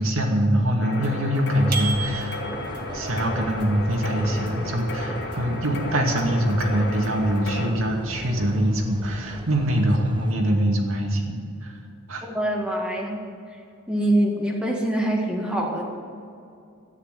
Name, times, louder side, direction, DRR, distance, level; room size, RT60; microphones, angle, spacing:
voice 1, 0.0-2.4 2.9-11.8 12.1-12.2, equal, 65° right, 1 dB, 2.3 m, -23 dB
sound 1, 0.8-7.7, left 1 dB, 55° left, 2.2 m, -34 dB
sound 2, 1.5-10.3, right 2 dB, 20° right, 0.5 m, -38 dB
sound 3, 1.7-2.8, right 5 dB, 45° right, 1.7 m, -31 dB
voice 2, 12.2-13.2 13.9-15.8, right 1 dB, 5° right, -1 dB, 1.9 m, -24 dB
13.0 x 10.0 x 8.3 m, 2.5 s
head